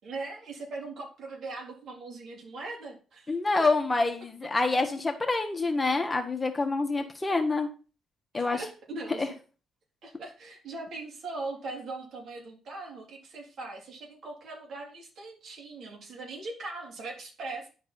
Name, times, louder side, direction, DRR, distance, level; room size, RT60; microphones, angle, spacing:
voice 1, 0.0-3.7 7.0-7.1 8.3-9.3 10.0-17.7, right 3 dB, 60° right, -2 dB, 3.8 m, -40 dB
voice 2, 3.3-7.7 8.3-8.6 9.2-9.3, left 3 dB, 20° left, 4 dB, 1.6 m, -27 dB
11.0 x 4.6 x 4.3 m, 0.36 s
cardioid pair, 90°, 0 cm